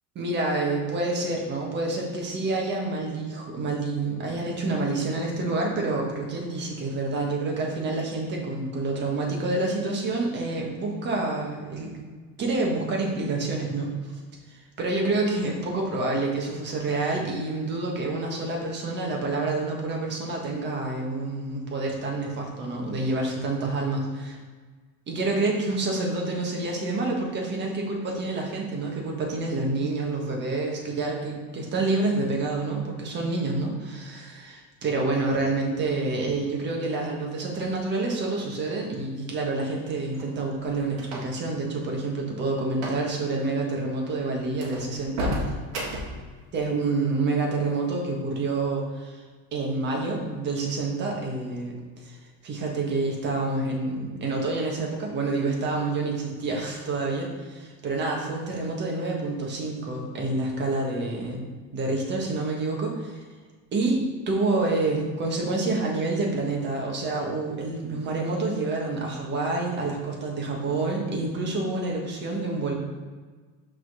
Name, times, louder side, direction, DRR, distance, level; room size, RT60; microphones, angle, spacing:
voice 1, 0.1-11.9 12.4-13.9 14.5-24.4 25.1-45.5 46.5-49.2 49.5-52.2 52.4-63.2 63.7-64.0 64.3-72.7, right 2 dB, 35° right, -1 dB, 1.5 m, -28 dB
sound 1, 40.1-41.5 42.7-43.1 43.3-43.5 44.0-44.1 44.6-46.3, equal, 50° right, 1.8 m, -32 dB
6.0 x 3.8 x 6.2 m, 1.4 s
cardioid pair, 165°, 32 cm